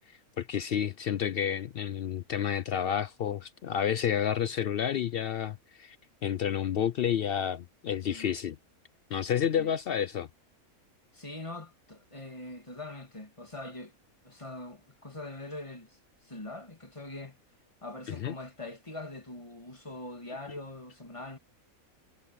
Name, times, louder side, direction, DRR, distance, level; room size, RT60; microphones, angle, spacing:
voice 1, 0.4-6.0 6.2-8.6 9.1-10.3 18.1-18.4, left 9 dB, 75° left, 0.5 m, -30 dB
voice 2, 11.1-14.0 14.2-16.0 16.2-17.4 17.8-21.4, left 2 dB, 20° left, 2.6 m, -43 dB
omnidirectional pair, 1.5 m